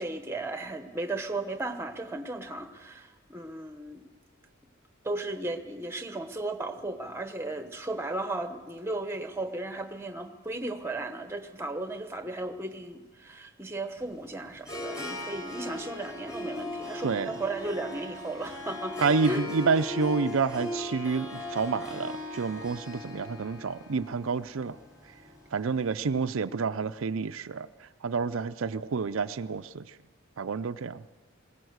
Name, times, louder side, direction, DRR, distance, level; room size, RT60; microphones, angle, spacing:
voice 1, 0.0-4.0 5.0-19.4, right 2 dB, 10° right, 8 dB, 1.1 m, -35 dB
Harp, 14.0-26.1, left 1 dB, 15° left, 4.8 m, -39 dB
voice 2, 19.0-24.8 25.5-30.0 30.4-31.0, right 5 dB, 75° right, 10 dB, 0.5 m, -29 dB
20.5 x 17.5 x 8.0 m, 1.3 s
head